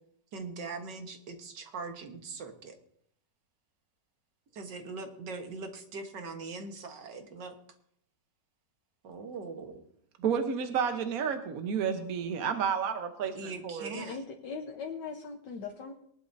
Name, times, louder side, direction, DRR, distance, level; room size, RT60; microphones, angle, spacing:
voice 1, 0.3-2.7 4.5-7.6 9.0-9.8 13.3-14.2, right 4 dB, 85° right, 5 dB, 2.0 m, -41 dB
voice 2, 10.2-13.9, right 7 dB, 60° right, 6 dB, 1.4 m, -31 dB
voice 3, 13.9-15.9, left 5 dB, 85° left, 1 dB, 1.7 m, -40 dB
21.0 x 11.5 x 2.7 m, 0.67 s
omnidirectional pair, 1.8 m